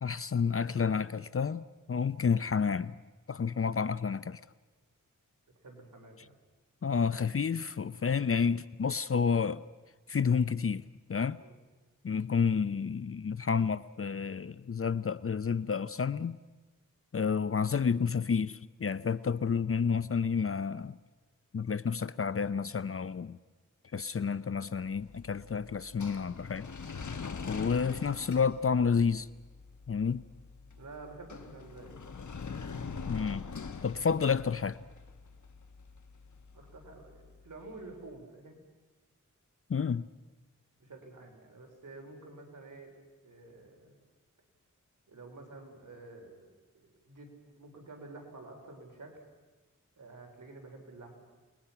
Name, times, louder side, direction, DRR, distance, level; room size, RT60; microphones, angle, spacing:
voice 1, 0.0-2.9 3.3-4.4 6.8-9.6 10.1-11.4 12.0-16.4 17.1-20.9 21.5-23.4 23.9-26.7 27.5-29.3 29.9-30.2 33.1-33.5 33.8-34.8 39.7-40.0, left 6 dB, 45° left, 0.6 m, -30 dB
voice 2, 5.6-6.4 11.4-11.6 30.7-32.4 36.5-38.6 40.8-42.9 43.2-44.0 45.1-49.2 50.0-51.2, right 2 dB, 75° right, 4.6 m, -50 dB
sound 1, 24.9-38.0, left 5 dB, 65° left, 1.4 m, -44 dB
29.0 x 21.0 x 5.9 m
wide cardioid pair, 65°, 31 cm